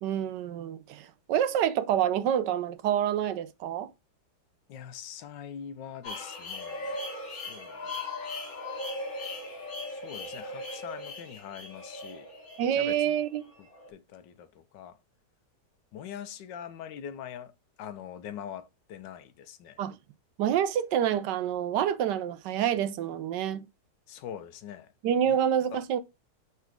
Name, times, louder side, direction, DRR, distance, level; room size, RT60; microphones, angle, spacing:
voice 1, 0.0-3.9 12.6-13.5 19.8-20.0 20.4-23.7 25.0-26.0, right 9 dB, 80° right, 1.3 m, -27 dB
voice 2, 4.7-7.0 7.3-8.0 9.9-12.3 12.7-13.2 13.9-15.0 15.9-17.5 17.8-19.8 24.1-24.9 25.2-25.4 25.7-25.8, left 9 dB, 80° left, 1.4 m, -43 dB
sound 1, 6.0-13.9, left 2 dB, 55° left, 2.3 m, -39 dB
6.0 x 5.7 x 3.5 m
omnidirectional pair, 1.9 m